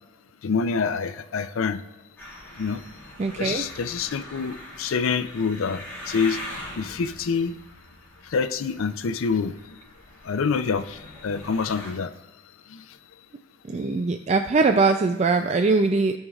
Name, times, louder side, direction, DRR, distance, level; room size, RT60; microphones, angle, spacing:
voice 1, 0.4-1.8 2.6-2.8 3.4-6.4 6.8-7.5 8.3-9.5 10.2-12.1 12.7-12.8, left 5 dB, 90° left, 12 dB, 0.5 m, -26 dB
sound 1, 2.2-11.9, left 1 dB, 10° left, 2.5 m, -42 dB
voice 2, 3.2-3.6 13.7-16.1, right 4 dB, 35° right, 6 dB, 0.3 m, -21 dB
16.0 x 5.5 x 2.4 m, 1.2 s
head